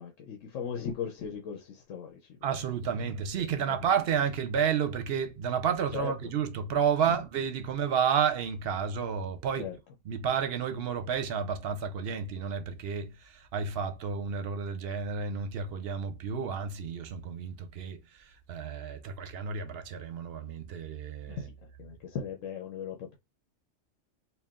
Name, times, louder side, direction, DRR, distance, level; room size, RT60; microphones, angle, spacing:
voice 1, 0.0-2.4 3.4-3.8 5.9-6.1 9.6-9.7 21.3-23.2, left 7 dB, 80° left, 1.1 m, -38 dB
voice 2, 2.4-9.7 10.1-21.4, right 7 dB, 60° right, 0.7 m, -31 dB
4.1 x 2.2 x 3.6 m
omnidirectional pair, 1.3 m